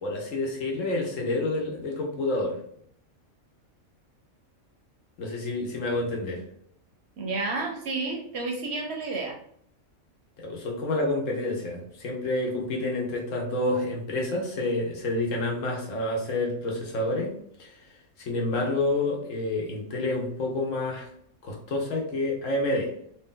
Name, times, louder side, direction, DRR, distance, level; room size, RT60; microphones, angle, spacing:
voice 1, 0.0-2.6 5.2-6.4 10.4-17.3 17.6-17.7 18.2-21.1 21.4-22.9, left 2 dB, 70° left, -1 dB, 1.2 m, -28 dB
voice 2, 7.2-9.4, right 3 dB, 65° right, 2 dB, 0.8 m, -31 dB
3.0 x 2.8 x 3.7 m, 0.67 s
omnidirectional pair, 1.4 m